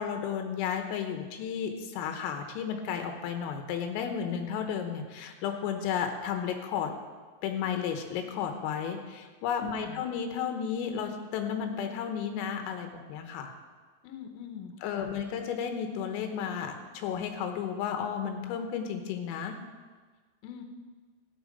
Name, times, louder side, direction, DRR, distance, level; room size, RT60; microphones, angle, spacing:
voice 1, 0.0-6.9 7.4-13.5 14.8-19.6, left 7 dB, 90° left, 5 dB, 3.8 m, -33 dB
voice 2, 9.7-10.0 14.0-15.1 20.4-20.6, left 8 dB, 75° left, 5 dB, 3.0 m, -43 dB
13.5 x 9.9 x 5.3 m, 1.4 s
omnidirectional pair, 5.8 m